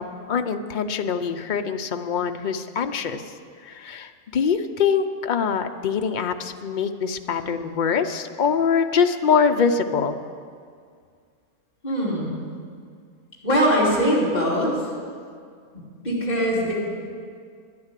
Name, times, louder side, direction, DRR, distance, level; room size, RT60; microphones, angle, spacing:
voice 1, 0.0-3.2 3.6-10.2, left 6 dB, 50° left, 7 dB, 0.6 m, -24 dB
voice 2, 11.8-12.4 13.4-14.8 16.0-16.7, equal, 30° left, -6 dB, 3.4 m, -21 dB
11.0 x 9.6 x 9.0 m, 2.1 s
omnidirectional pair, 1.5 m